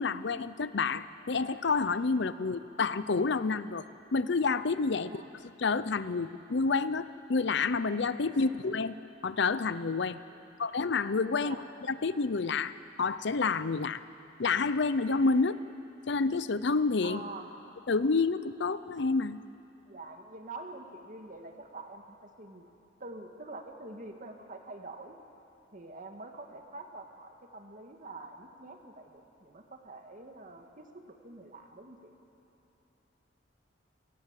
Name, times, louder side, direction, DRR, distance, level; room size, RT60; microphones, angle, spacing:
voice 1, 0.0-3.9 4.1-9.0 9.2-10.2 10.6-11.6 11.9-14.0 14.4-15.6 16.1-17.2 17.9-19.4, left 4 dB, 65° left, 14 dB, 0.6 m, -29 dB
voice 2, 17.0-17.6 19.9-22.7 23.0-25.2 25.7-32.1, right 2 dB, 45° right, 4 dB, 1.9 m, -46 dB
29.0 x 18.5 x 7.5 m, 2.9 s
head